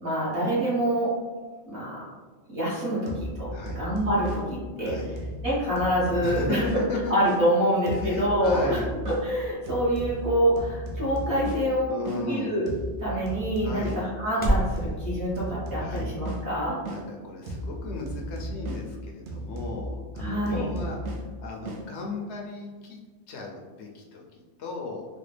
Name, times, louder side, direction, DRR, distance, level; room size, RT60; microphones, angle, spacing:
voice 1, 0.0-1.1 1.7-2.0 2.5-3.1 3.4-5.0 5.4-6.6 7.1-8.8 9.1-12.7 13.0-16.8 20.2-20.7, equal, 55° right, -7 dB, 1.4 m, -26 dB
sound 1, 3.1-7.4 7.9-12.2 12.7-17.0 17.5-21.8, equal, 70° right, 0.9 m, -36 dB
voice 2, 3.5-3.8 4.8-5.1 6.2-7.4 7.9-8.9 11.9-12.5 13.6-14.0 15.8-16.1 16.9-23.0 23.3-25.1, left 3 dB, 70° left, 0 dB, 0.8 m, -35 dB
sound 2, 8.5-14.8, right 1 dB, 10° left, 0.5 m, -35 dB
4.1 x 2.2 x 3.2 m, 1.4 s
omnidirectional pair, 1.2 m